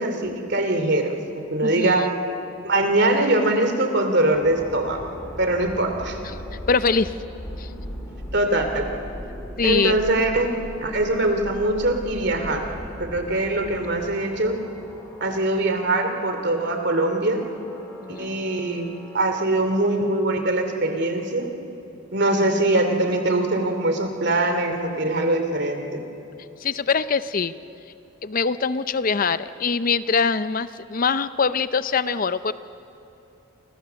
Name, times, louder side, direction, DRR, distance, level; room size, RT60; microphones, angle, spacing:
voice 1, 0.0-2.1 2.6-5.1 5.4-6.2 8.3-8.9 9.6-10.5 10.8-12.7 13.0-14.6 15.2-17.4 18.1-18.9 19.1-21.5 22.1-26.0, right 2 dB, 55° right, 6 dB, 2.9 m, -22 dB
voice 2, 1.6-2.1 6.2-6.3 6.7-7.1 7.6-7.7 9.6-10.0 18.0-18.4 26.6-27.5 28.2-32.5, left 5 dB, 40° left, 13 dB, 0.6 m, -23 dB
sound 1, 4.3-20.1, equal, 10° left, 3.2 m, -39 dB
29.0 x 25.5 x 7.0 m, 2.9 s
head